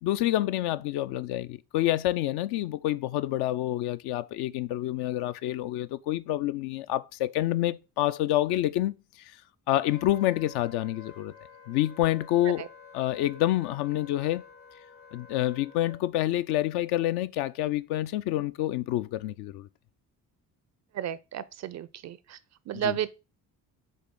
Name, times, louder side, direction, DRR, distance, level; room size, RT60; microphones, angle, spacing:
voice 1, 0.0-8.9 9.7-11.3 11.7-12.7 12.9-14.4 15.1-19.7 22.7-23.0, left 14 dB, 55° left, 0.5 m, -28 dB
Wind instrument woodwind instrument, 9.8-16.0, left 6 dB, 70° left, 2.6 m, -50 dB
voice 2, 20.9-22.4 22.7-23.1, right 10 dB, 35° right, 0.4 m, -32 dB
7.7 x 3.5 x 3.7 m
figure-of-eight pair, 45°, 48 cm